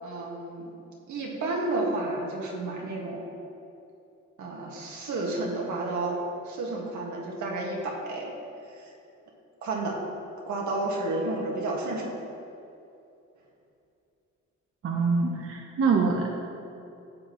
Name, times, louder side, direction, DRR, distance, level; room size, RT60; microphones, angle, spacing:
voice 1, 0.0-0.7 1.1-3.3 4.4-8.3 8.7-8.9 9.6-10.0 10.5-12.1, right 2 dB, 70° right, -2 dB, 1.9 m, -31 dB
voice 2, 14.8-16.5, right 4 dB, 50° right, 0 dB, 1.0 m, -25 dB
12.5 x 7.8 x 3.1 m, 2.7 s
cardioid pair, 90°, 30 cm